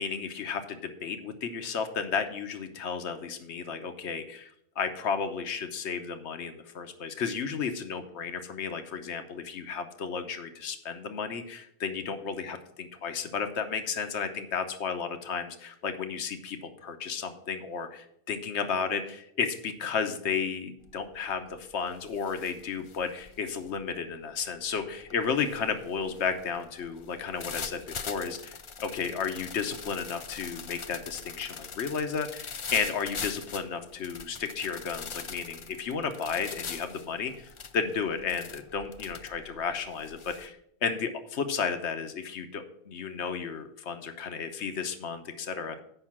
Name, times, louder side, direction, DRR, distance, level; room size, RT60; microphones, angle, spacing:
voice 1, 0.0-4.5 4.8-45.8, left 6 dB, 80° left, 7 dB, 1.1 m, -33 dB
sound 1, 20.8-21.2 21.5-40.5, left 5 dB, 45° left, 0.4 m, -43 dB
7.8 x 5.5 x 7.2 m, 0.72 s
omnidirectional pair, 1.1 m